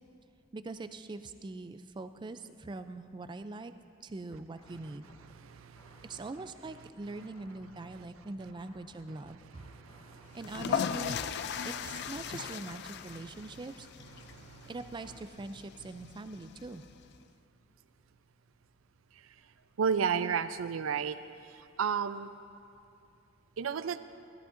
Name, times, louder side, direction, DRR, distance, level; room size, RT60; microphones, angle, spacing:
voice 1, 0.5-3.7 4.0-5.1 6.0-9.7 10.3-11.2 11.6-13.9 14.7-16.8, right 3 dB, 25° right, 10 dB, 0.3 m, -43 dB
sound 1, 4.5-15.3, left 1 dB, 25° left, 0.8 m, -60 dB
voice 2, 5.2-6.3 7.1-7.3 7.7-8.1 9.1-10.6 11.5-11.7 12.2-12.3 13.1-13.3 14.1-14.7 16.0-16.1 19.8-21.2 21.5-22.3 23.6-24.0, right 6 dB, 85° right, 12 dB, 0.4 m, -35 dB
sound 2, 10.3-17.2, left 7 dB, 55° left, 0.3 m, -38 dB
16.5 x 13.5 x 2.6 m, 2.5 s
head